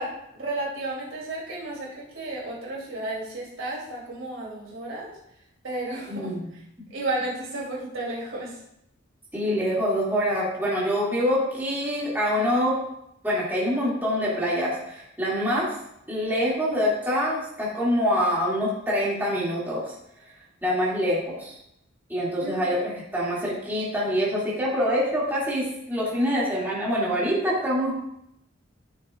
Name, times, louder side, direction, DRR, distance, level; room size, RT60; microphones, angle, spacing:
voice 1, 0.0-5.1 5.6-6.3 6.9-8.6 22.4-22.7, right 2 dB, 85° right, -5 dB, 3.3 m, -33 dB
voice 2, 6.1-6.5 9.3-12.8 13.2-15.7 16.1-19.9 20.6-21.6 22.1-27.9, equal, 10° right, -7 dB, 2.3 m, -25 dB
13.5 x 6.5 x 2.5 m, 0.79 s
head